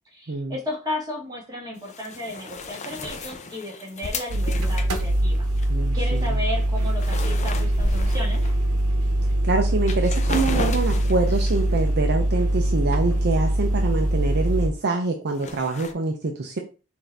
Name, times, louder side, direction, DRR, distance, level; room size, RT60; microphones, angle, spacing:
voice 1, 0.1-5.4 5.9-8.4, left 1 dB, 15° right, -2 dB, 1.6 m, -34 dB
sound 1, 1.8-5.7 6.1-6.3 6.6-8.8 9.3-9.4 9.8-11.7 15.4-15.9, left 3 dB, 30° left, 0.5 m, -34 dB
sound 2, 4.3-14.7, right 1 dB, 85° right, 0.9 m, -22 dB
voice 2, 5.7-6.4 9.4-16.6, right 3 dB, 50° right, 4 dB, 0.5 m, -25 dB
6.0 x 2.6 x 3.4 m, 0.34 s
head